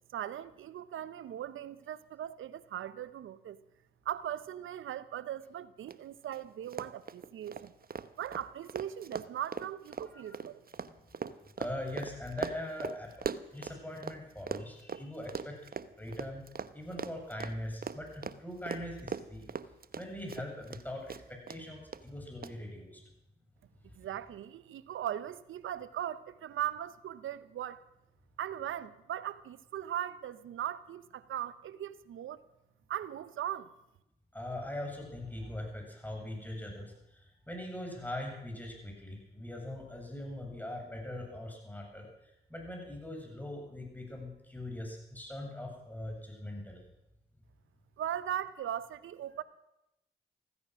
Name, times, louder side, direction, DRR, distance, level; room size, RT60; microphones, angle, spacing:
voice 1, 0.0-3.6 4.0-7.7 8.2-10.6 24.0-27.8 28.4-32.4 32.9-33.7 48.0-49.4, right 11 dB, 80° right, 0.7 m, -39 dB
Run, 5.9-6.0 6.2-6.4 6.7-14.2 14.5-20.8 21.1-21.6 21.9-22.0 22.4-22.5, right 6 dB, 45° right, 0.9 m, -40 dB
voice 2, 11.6-15.6 16.0-16.4 16.7-19.5 19.9-23.0 34.3-46.8, left 1 dB, 10° left, 7.5 m, -41 dB
15.5 x 15.0 x 6.2 m
supercardioid pair, 40°, 20 cm